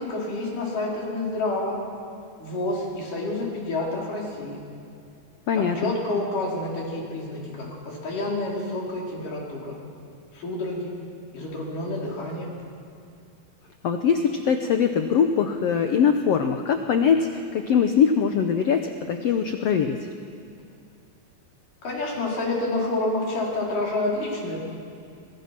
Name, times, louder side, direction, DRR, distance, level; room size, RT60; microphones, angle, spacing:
voice 1, 0.0-1.8 2.4-4.6 5.5-7.4 7.8-9.8 10.3-11.0 11.3-12.5 21.8-24.6, left 2 dB, 60° left, -4 dB, 6.2 m, -28 dB
voice 2, 5.5-5.9 13.8-20.1, left 7 dB, 90° left, 6 dB, 1.4 m, -22 dB
24.0 x 22.0 x 6.1 m, 2.5 s
omnidirectional pair, 4.2 m